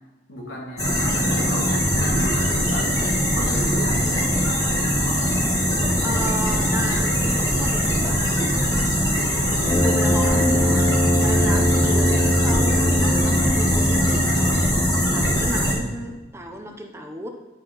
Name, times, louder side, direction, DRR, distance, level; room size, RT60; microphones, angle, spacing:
voice 1, 0.3-4.3 15.1-15.6, left 1 dB, 90° left, -3 dB, 2.0 m, -35 dB
sound 1, 0.8-15.7, equal, 20° left, 1.4 m, -22 dB
voice 2, 6.0-8.9 9.8-17.3, equal, 15° right, 3 dB, 0.6 m, -33 dB
Brass instrument, 9.6-15.5, left 1 dB, 40° left, 1.0 m, -22 dB
9.7 x 4.3 x 3.8 m, 1.2 s
head